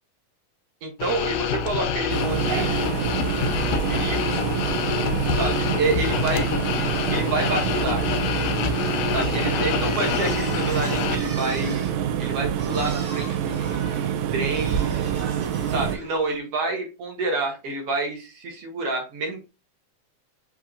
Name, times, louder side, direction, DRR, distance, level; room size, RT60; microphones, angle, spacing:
voice 1, 0.8-2.9 3.9-4.4 5.3-6.5 7.1-8.0 9.1-11.8 12.2-14.9 15.7-19.5, right 2 dB, 65° right, 2 dB, 1.6 m, -28 dB
sound 1, 1.0-11.2, left 8 dB, 80° left, 2.0 m, -27 dB
sound 2, 2.1-16.0, right 9 dB, 80° right, 1.8 m, -26 dB
sound 3, 9.8-16.4, right 2 dB, 40° right, 0.8 m, -40 dB
7.2 x 2.8 x 2.5 m, 0.28 s
omnidirectional pair, 3.9 m